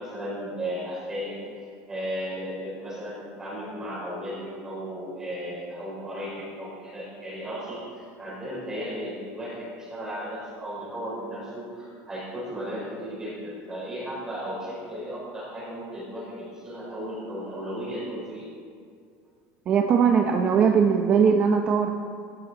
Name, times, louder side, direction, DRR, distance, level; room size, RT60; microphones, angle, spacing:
voice 1, 0.0-18.5, equal, 10° right, -5 dB, 4.4 m, -35 dB
voice 2, 19.7-21.9, right 6 dB, 25° right, 3 dB, 0.7 m, -20 dB
18.0 x 16.0 x 3.9 m, 2.2 s
cardioid pair, 175°, 5 cm